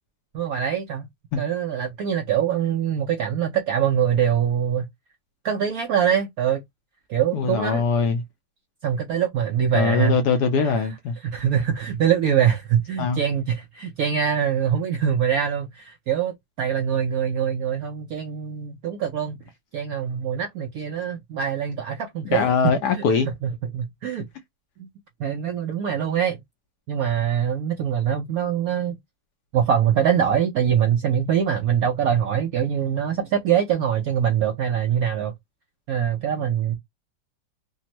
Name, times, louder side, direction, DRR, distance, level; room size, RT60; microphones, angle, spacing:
voice 1, 0.3-1.1 1.4-4.9 5.4-6.6 7.1-7.8 8.8-10.2 10.6-10.9 11.2-19.4 19.7-22.5 22.9-23.0 23.4-24.3 24.8-24.9 25.2-26.4 26.9-29.0 29.5-35.3 35.9-36.8, right 8 dB, 75° right, 0.8 m, -23 dB
voice 2, 7.3-8.2 9.7-11.2 13.0-13.2 22.3-23.3, left 5 dB, 75° left, 1.0 m, -22 dB
3.4 x 2.0 x 2.8 m
omnidirectional pair, 2.1 m